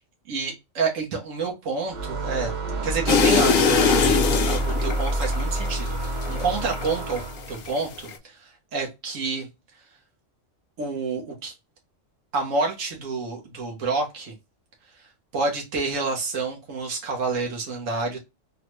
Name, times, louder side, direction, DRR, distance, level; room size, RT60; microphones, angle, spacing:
voice 1, 0.3-2.5 2.8-7.2 7.5-9.5 10.8-11.5 12.3-14.3 15.3-18.2, right 4 dB, 85° right, 1.3 m, -28 dB
Game Over Sound, 1.9-7.6, right 1 dB, 50° right, 0.6 m, -28 dB
sound 1, 3.1-7.2 7.5-8.2, left 5 dB, 60° left, 0.6 m, -22 dB
3.6 x 2.1 x 3.0 m
omnidirectional pair, 1.3 m